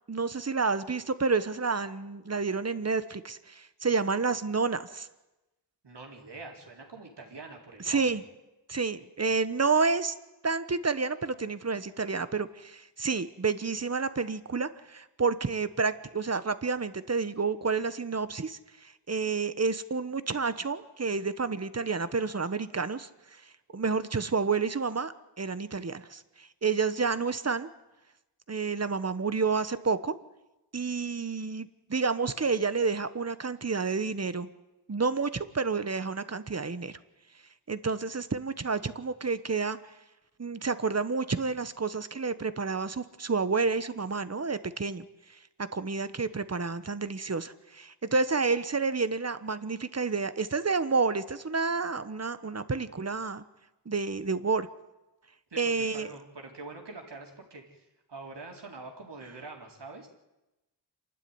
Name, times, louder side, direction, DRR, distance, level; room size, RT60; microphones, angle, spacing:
voice 1, 0.1-5.1 7.9-8.2 8.7-10.1 10.4-23.1 23.7-27.7 28.5-30.1 30.7-34.5 34.9-37.0 37.7-39.8 40.4-45.4 45.7-53.4 53.8-54.7 55.6-56.1, right 4 dB, 35° right, 13 dB, 1.2 m, -29 dB
voice 2, 5.8-8.0 55.5-60.1, right 3 dB, 65° right, 1 dB, 4.1 m, -45 dB
27.5 x 12.0 x 9.6 m, 1.0 s
wide cardioid pair, 70°, 44 cm